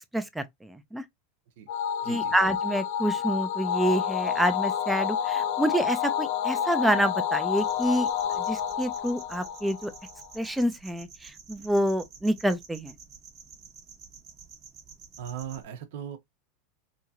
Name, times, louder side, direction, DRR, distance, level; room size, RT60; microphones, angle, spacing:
voice 1, 0.1-1.0 2.1-9.9 10.3-12.9, right 1 dB, 5° right, 0.5 m, -28 dB
sound 1, 1.7-10.3, left 9 dB, 65° left, 0.4 m, -29 dB
voice 2, 2.0-2.3 15.2-16.2, right 9 dB, 75° right, 0.8 m, -38 dB
sound 2, 7.6-15.6, right 6 dB, 30° right, 1.0 m, -50 dB
3.0 x 2.8 x 2.3 m
supercardioid pair, 125°, 0 cm